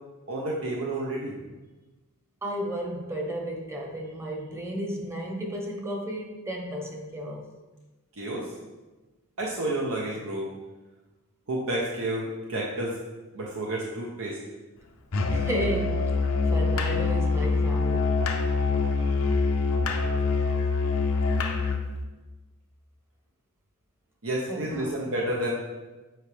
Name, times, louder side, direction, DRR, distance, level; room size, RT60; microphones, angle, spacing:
voice 1, 0.3-1.4 8.2-8.5 9.4-10.5 11.5-12.9 13.3-14.4 24.2-25.5, right 1 dB, 65° right, -2 dB, 0.8 m, -30 dB
voice 2, 2.4-7.5 15.3-16.0 16.5-18.1 24.5-24.9, equal, 10° right, 0 dB, 1.0 m, -33 dB
Musical instrument, 15.1-21.9, left 3 dB, 65° left, 0.7 m, -25 dB
7.7 x 4.6 x 3.5 m, 1.2 s
head